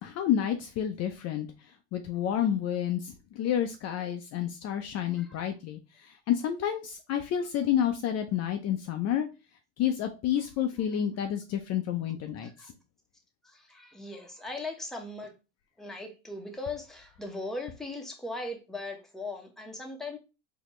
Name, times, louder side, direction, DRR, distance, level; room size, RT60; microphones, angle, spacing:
voice 1, 0.0-9.3 9.8-12.7, left 10 dB, 40° left, 0.5 m, -30 dB
voice 2, 13.4-15.3 15.8-20.2, left 2 dB, ahead, 0.9 m, -39 dB
4.1 x 2.8 x 3.1 m
supercardioid pair, 105°, 41 cm